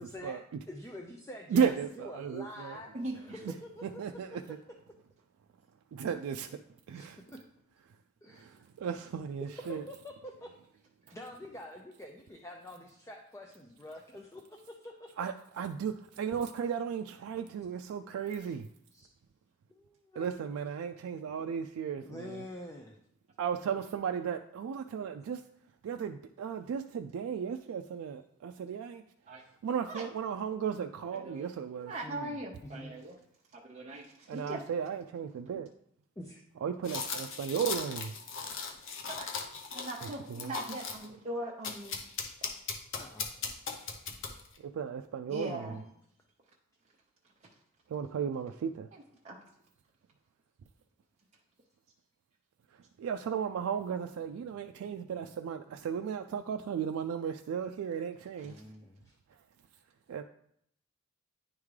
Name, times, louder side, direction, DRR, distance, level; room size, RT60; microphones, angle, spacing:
voice 1, 0.0-4.0 6.9-7.4 8.2-8.5 9.4-10.5 11.1-15.1 18.5-18.6 18.9-19.1 19.7-20.4 22.0-23.0 29.4-29.5 32.0-32.9 36.2-36.4 43.0-43.3 45.6-45.9 58.4-59.1, left 1 dB, 15° left, 2 dB, 0.5 m, -46 dB
voice 2, 1.5-2.8 3.4-3.5 3.8-4.6 5.9-6.6 6.9-7.2 8.3-9.8 15.2-18.7 20.2-22.4 23.4-25.4 25.8-29.0 29.6-31.9 34.3-35.7 36.6-38.1 40.0-40.6 44.6-45.8 47.9-48.9 53.0-58.6 60.1-60.2, right 7 dB, 90° right, 6 dB, 0.3 m, -35 dB
voice 3, 2.9-3.4 29.3-29.4 29.9-30.0 31.1-31.5 31.8-33.2 33.5-34.6 38.5-38.6 39.1-39.3 39.7-41.9 45.3-45.8 49.2-49.4, right 1 dB, 35° right, -4 dB, 0.7 m, -40 dB
sound 1, 36.8-41.1 41.6-44.6, left 5 dB, 65° left, 0.8 m, -38 dB
10.0 x 3.6 x 3.2 m, 0.72 s
head